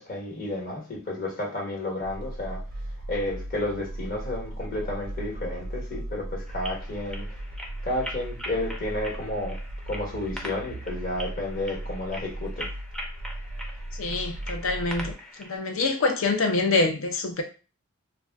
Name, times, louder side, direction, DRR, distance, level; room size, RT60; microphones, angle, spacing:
voice 1, 0.0-2.6 3.1-7.3 7.8-12.7, left 1 dB, 45° left, 1.2 m, -31 dB
sound 1, 2.0-15.1, right 1 dB, 80° right, 0.5 m, -37 dB
sound 2, 6.5-15.6, equal, 5° left, 0.4 m, -42 dB
voice 2, 13.9-15.1 15.4-17.4, left 3 dB, 70° left, 0.6 m, -25 dB
2.4 x 2.2 x 3.4 m
head